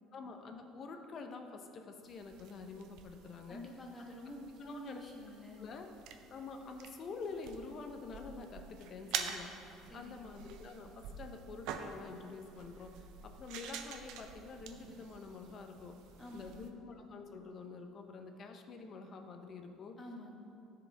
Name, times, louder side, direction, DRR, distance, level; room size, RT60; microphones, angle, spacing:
voice 1, 0.1-3.6 4.6-5.0 5.6-5.9 6.3-9.5 9.9-12.9 13.2-16.0 16.3-20.0, left 4 dB, 35° left, 5 dB, 0.7 m, -47 dB
sound 1, 2.1-16.7, right 7 dB, 70° right, 0.6 m, -47 dB
voice 2, 3.5-5.7 9.9-10.3 16.2-16.7 20.0-20.4, left 1 dB, 20° left, 0 dB, 1.2 m, -48 dB
14.0 x 5.0 x 3.4 m, 2.7 s
cardioid pair, 140°, 0 cm